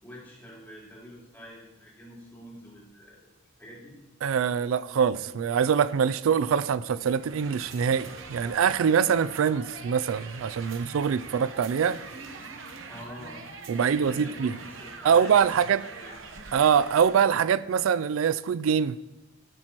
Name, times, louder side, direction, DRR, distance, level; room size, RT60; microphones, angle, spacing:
voice 1, 0.0-3.2 3.6-3.9 12.9-13.4 13.7-15.7 16.0-16.2, equal, 10° left, 4.3 m, -46 dB
voice 2, 4.2-12.0 13.7-14.5 15.0-15.8 16.5-19.0, right 7 dB, 90° right, 0.4 m, -24 dB
sound 1, 7.0-17.4, right 4 dB, 70° right, 1.0 m, -43 dB
Laughter, 11.3-15.8, right 1 dB, 30° right, 1.1 m, -51 dB
16.0 x 8.8 x 3.0 m
head